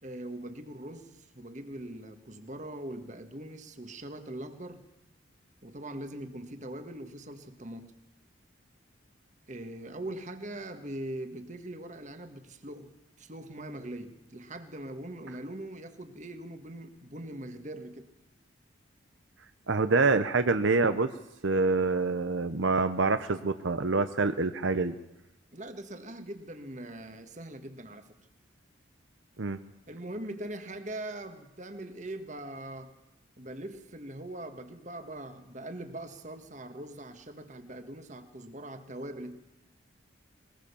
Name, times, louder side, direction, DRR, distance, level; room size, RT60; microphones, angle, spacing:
voice 1, 0.0-4.9 5.6-7.9 9.5-12.9 13.2-18.1 25.5-28.2 29.9-32.9 33.4-39.4, right 1 dB, 40° right, 8 dB, 1.7 m, -41 dB
voice 2, 19.7-21.1 21.4-24.9 29.4-29.6, right 3 dB, 75° right, 9 dB, 0.8 m, -26 dB
21.5 x 19.5 x 7.0 m, 0.90 s
head